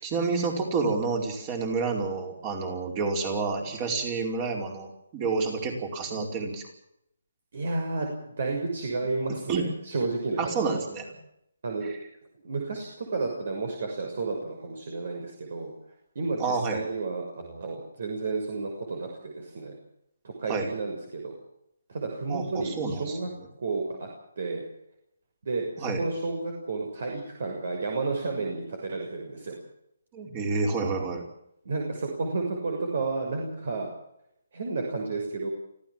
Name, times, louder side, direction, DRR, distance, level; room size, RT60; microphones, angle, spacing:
voice 1, 0.0-6.6 9.5-9.7 10.4-11.0 16.4-16.8 20.5-20.7 22.3-23.2 25.8-26.0 30.1-31.2, right 4 dB, 20° right, 4 dB, 5.0 m, -29 dB
voice 2, 7.5-10.8 11.6-11.9 12.4-15.7 16.1-19.7 20.2-21.3 21.9-23.3 23.6-24.1 24.4-24.6 25.4-29.6 31.6-33.9 34.5-35.5, right 3 dB, 55° right, 2 dB, 6.5 m, -31 dB
25.0 x 16.0 x 7.6 m, 0.76 s
hypercardioid pair, 165°, 0 cm